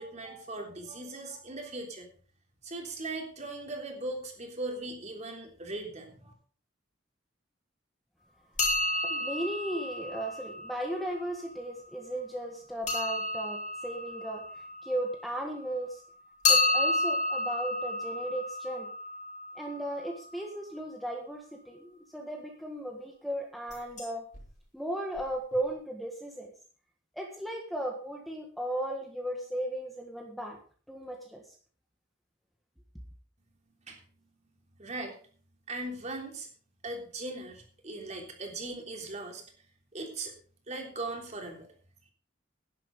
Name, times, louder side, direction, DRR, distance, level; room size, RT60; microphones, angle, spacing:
voice 1, 0.0-2.1 2.6-6.3 33.9-34.0 34.8-35.1 35.7-36.5 36.8-39.4 39.9-40.3 40.7-41.7, right 2 dB, 35° right, 2 dB, 3.4 m, -39 dB
sound 1, 8.6-11.3 12.9-15.6 16.4-20.3 23.7-24.1 24.3-24.4 25.2-25.3 25.5-25.6, left 2 dB, 40° left, 5.1 m, -31 dB
voice 2, 9.0-16.0 16.5-18.9 19.5-24.2 24.7-26.5 27.1-30.6 30.9-31.5, right 1 dB, ahead, 1 dB, 1.6 m, -36 dB
11.0 x 10.5 x 5.3 m, 0.42 s
head